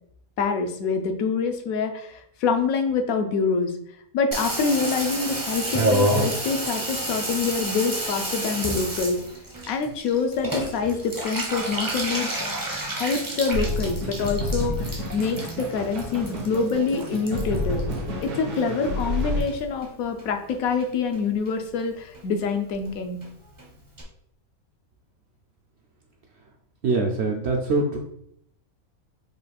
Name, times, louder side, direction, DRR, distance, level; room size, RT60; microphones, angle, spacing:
voice 1, 0.4-3.7 4.1-9.2 9.7-12.3 12.9-17.8 18.2-23.2, left 5 dB, 75° left, 6 dB, 1.0 m, -26 dB
Water tap faucet / Bathtub (filling or washing), 4.3-18.9 19.1-19.9 20.2-20.3 20.5-20.6 20.8-21.2 21.5-21.6 21.8-21.9 22.1-22.2 22.5-22.6 22.8-22.9 23.2-23.3 23.6-23.7 24.0-24.1, right 1 dB, 20° right, 0.5 m, -30 dB
sound 1, 13.5-19.4, left 1 dB, 80° right, 1.7 m, -29 dB
voice 2, 26.8-28.0, right 3 dB, 65° right, 1 dB, 0.7 m, -23 dB
4.9 x 2.3 x 4.1 m, 0.70 s
omnidirectional pair, 1.5 m